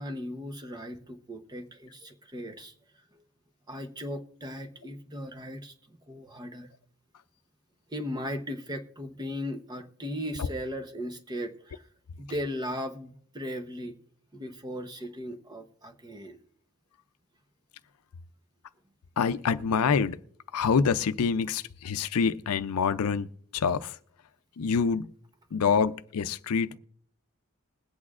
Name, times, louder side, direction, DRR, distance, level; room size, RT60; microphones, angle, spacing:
voice 1, 0.0-2.7 3.1-3.2 3.7-6.7 7.9-11.9 12.2-14.0 14.3-16.4, equal, 20° right, 0.8 m, -37 dB
voice 2, 19.2-20.2 20.5-24.0 24.6-25.1 25.5-26.8, left 6 dB, 80° left, 0.5 m, -26 dB
21.5 x 8.4 x 2.4 m
head